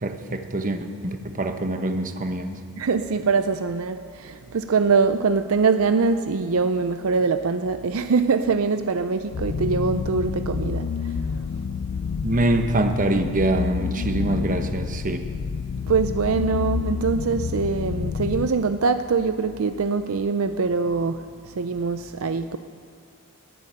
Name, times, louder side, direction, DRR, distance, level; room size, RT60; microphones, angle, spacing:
voice 1, 0.0-2.6 12.2-15.3, right 1 dB, 35° right, 6 dB, 1.0 m, -24 dB
voice 2, 2.8-11.1 15.9-22.6, right 4 dB, 70° right, 9 dB, 0.5 m, -23 dB
sound 1, 9.3-18.5, left 5 dB, 50° left, 0.4 m, -29 dB
21.0 x 7.8 x 8.6 m, 2.1 s
head